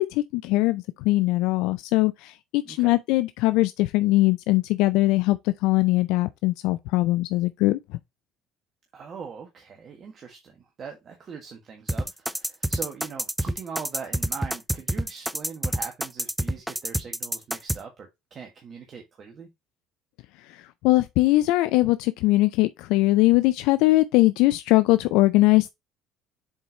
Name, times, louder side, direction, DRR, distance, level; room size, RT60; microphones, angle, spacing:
voice 1, 0.0-7.8 20.5-25.7, left 19 dB, 75° left, 0.4 m, -21 dB
voice 2, 2.6-2.9 8.9-19.5, right 6 dB, 50° right, 1.6 m, -41 dB
sound 1, 11.9-17.8, right 1 dB, 5° right, 0.5 m, -27 dB
7.2 x 4.6 x 2.9 m
hypercardioid pair, 60°, 0 cm